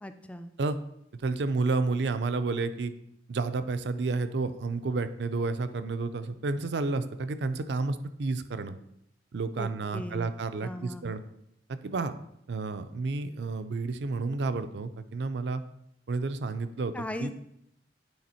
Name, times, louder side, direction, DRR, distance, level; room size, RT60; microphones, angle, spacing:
voice 1, 0.0-0.5 9.6-10.3 10.6-11.1 16.9-17.3, left 1 dB, 10° left, 9 dB, 0.3 m, -38 dB
voice 2, 1.2-2.9 3.3-8.8 9.3-11.2 11.7-12.1 12.5-15.6 16.1-16.9 17.2-17.3, right 3 dB, 75° right, 11 dB, 0.5 m, -30 dB
8.7 x 3.5 x 4.3 m, 0.78 s
head